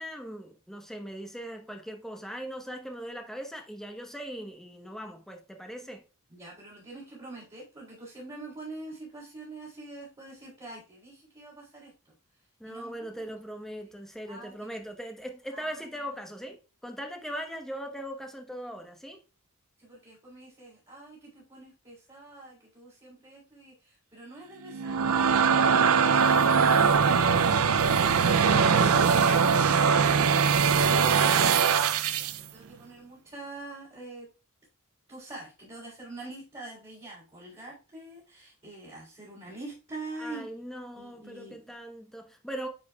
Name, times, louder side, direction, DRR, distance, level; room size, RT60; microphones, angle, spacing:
voice 1, 0.0-6.0 12.6-19.2 28.2-29.6 30.6-31.4 40.2-42.7, equal, ahead, 1.0 m, -40 dB
voice 2, 6.3-12.1 12.6-13.2 14.3-14.8 15.5-16.2 19.8-26.6 31.9-34.3 35.1-40.5 40.9-41.7, right 2 dB, 25° right, 3.5 m, -45 dB
sound 1, 24.7-32.4, right 6 dB, 70° right, 0.4 m, -22 dB
9.7 x 5.1 x 2.3 m
head